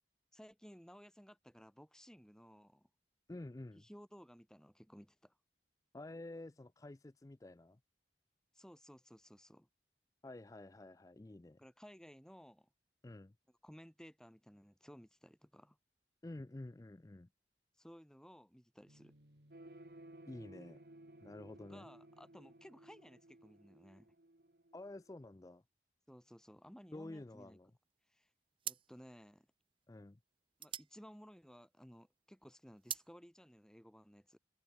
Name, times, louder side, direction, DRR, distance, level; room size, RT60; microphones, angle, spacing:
voice 1, 0.3-2.9 3.7-5.4 8.5-9.7 11.6-12.7 13.6-15.8 17.8-19.2 21.7-24.1 26.1-27.6 28.1-28.3 28.6-29.5 30.6-34.4, equal, 5° left, 5.9 m, -58 dB
voice 2, 3.3-3.8 5.9-7.8 10.2-11.6 13.0-13.3 16.2-17.3 20.3-20.8 21.2-21.9 24.7-25.6 26.9-27.7 29.9-30.2, left 2 dB, 20° left, 0.4 m, -50 dB
sound 1, 18.9-23.7, equal, 75° right, 7.9 m, -67 dB
sound 2, 19.5-25.3, right 1 dB, 55° right, 1.5 m, -58 dB
sound 3, 27.9-28.2 28.6-32.0 32.3-33.1, right 10 dB, 30° right, 1.2 m, -46 dB
head